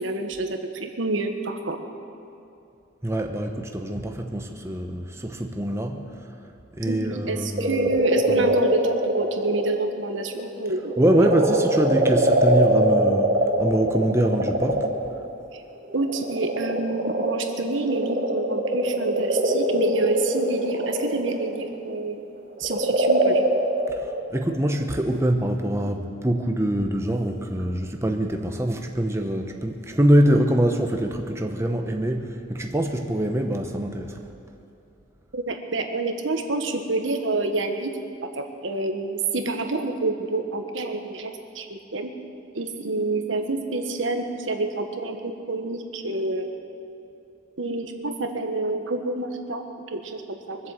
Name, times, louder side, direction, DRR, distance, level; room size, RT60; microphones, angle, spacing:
voice 1, 0.0-1.8 6.8-10.9 15.5-15.6 15.9-22.2 22.6-23.4 35.3-38.1 38.4-42.1 42.5-46.5 47.6-50.7, right 2 dB, 80° right, 5 dB, 1.3 m, -28 dB
voice 2, 3.0-6.0 6.7-7.9 8.3-8.5 11.0-14.9 23.9-34.2, right 1 dB, 15° right, 3 dB, 0.9 m, -24 dB
sound 1, 7.6-9.7 10.2-15.1 15.9-22.0 22.6-24.2, right 1 dB, 45° right, 2.6 m, -23 dB
23.5 x 7.9 x 7.6 m, 2.6 s
head